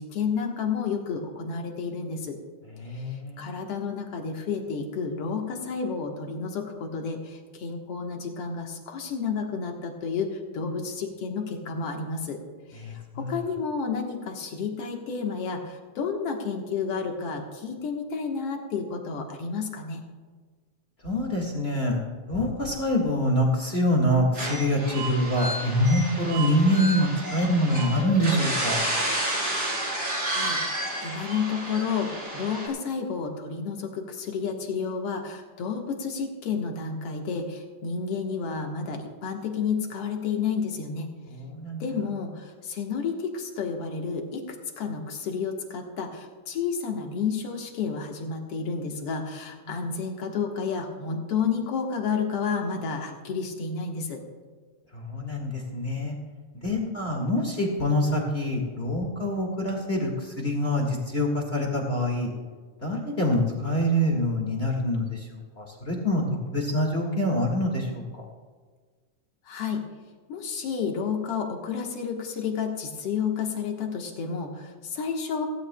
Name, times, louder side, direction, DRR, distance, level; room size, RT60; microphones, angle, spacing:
voice 1, 0.0-2.4 2.9-3.0 3.4-12.4 12.7-20.0 30.2-30.6 31.0-41.1 41.8-54.2 56.8-56.9 69.5-69.8 70.3-75.5, left 5 dB, 55° left, 2 dB, 2.0 m, -31 dB
voice 2, 2.8-3.5 12.8-13.3 21.0-22.0 22.3-28.8 41.3-41.8 49.7-49.8 54.9-56.1 56.6-62.3 62.8-65.3 65.6-68.0, equal, 30° left, 0 dB, 1.3 m, -25 dB
sound 1, 24.3-32.7, right 1 dB, 30° right, 3.4 m, -30 dB
17.0 x 16.0 x 2.2 m, 1.5 s
omnidirectional pair, 3.6 m